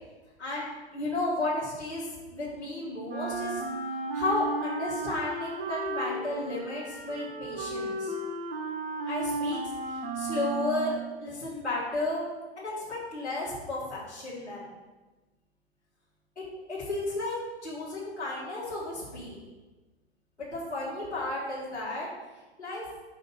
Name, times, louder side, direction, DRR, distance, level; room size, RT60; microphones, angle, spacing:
voice 1, 0.4-3.6 4.1-8.1 9.0-12.3 12.6-14.7 16.4-19.4 20.4-22.1 22.6-22.8, left 2 dB, 90° left, -8 dB, 1.7 m, -33 dB
Wind instrument woodwind instrument, 3.1-11.2, right 2 dB, 60° right, 1.1 m, -34 dB
5.4 x 4.0 x 5.5 m, 1.2 s
figure-of-eight pair, 105°, 33 cm